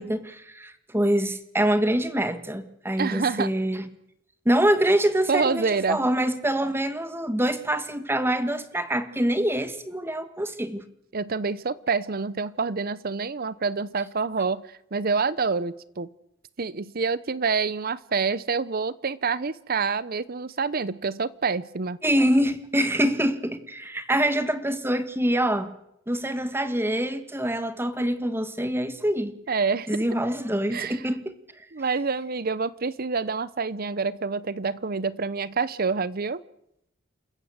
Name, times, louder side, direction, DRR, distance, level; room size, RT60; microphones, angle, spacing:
voice 1, 0.0-3.9 4.4-10.8 22.0-25.7 26.1-29.3 29.9-31.3, right 1 dB, 10° right, 1.6 m, -25 dB
voice 2, 3.0-3.5 5.3-6.1 11.1-14.6 14.9-16.1 16.6-22.0 29.5-29.9 30.7-31.0 31.7-36.4, right 4 dB, 50° right, 0.8 m, -27 dB
28.5 x 15.0 x 8.0 m
head